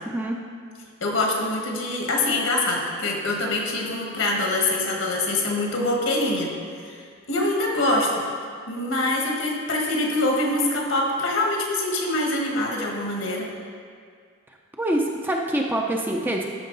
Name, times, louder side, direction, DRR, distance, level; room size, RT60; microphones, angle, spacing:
voice 1, 1.0-6.5 6.8-7.0 7.3-8.2 8.7-13.5, left 2 dB, 70° left, 0 dB, 1.6 m, -24 dB
voice 2, 14.8-16.5, right 1 dB, 10° right, 0 dB, 0.5 m, -25 dB
13.0 x 5.8 x 4.0 m, 2.1 s
head